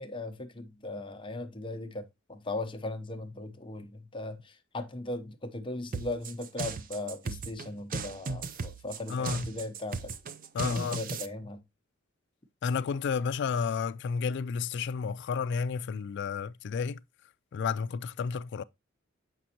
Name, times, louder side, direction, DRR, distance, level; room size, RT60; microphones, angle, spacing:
voice 1, 0.0-10.1 10.6-11.6, left 2 dB, 25° left, 0.8 m, -38 dB
sound 1, 5.9-11.3, right 4 dB, 45° right, 0.5 m, -37 dB
voice 2, 9.1-9.4 10.5-11.0 12.6-17.0 17.5-18.6, left 5 dB, 60° left, 0.3 m, -31 dB
7.6 x 5.1 x 2.8 m
head